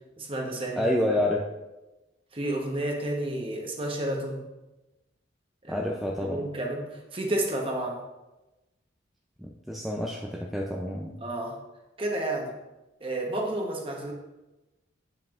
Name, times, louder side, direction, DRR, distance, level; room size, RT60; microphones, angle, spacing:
voice 1, 0.2-0.9 2.3-4.4 5.6-5.8 6.2-8.0 11.2-11.6 12.0-12.5 13.0-14.1, right 1 dB, 30° right, 1 dB, 1.0 m, -31 dB
voice 2, 0.8-1.4 5.7-6.5 9.4-11.2, left 1 dB, ahead, -2 dB, 0.4 m, -28 dB
7.6 x 7.5 x 2.4 m, 1.0 s
head